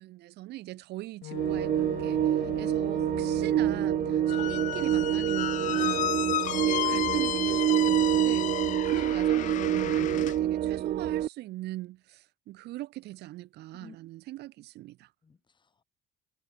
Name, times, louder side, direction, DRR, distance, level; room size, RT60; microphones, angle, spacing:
voice 1, 0.0-6.2 6.5-8.5 8.8-15.1, right 17 dB, 80° right, 2.1 m, -41 dB
Wind instrument woodwind instrument, 1.2-5.9, left 17 dB, 80° left, 4.9 m, -42 dB
sound 1, 1.3-11.3, right 12 dB, 55° right, 0.8 m, -27 dB
Squeak, 4.3-10.4, left 12 dB, 50° left, 0.4 m, -32 dB
voice 2, 6.2-6.9 8.6-8.8 13.8-14.0 15.2-15.8, left 5 dB, 30° left, 5.0 m, -54 dB
cardioid pair, 110°, 17 cm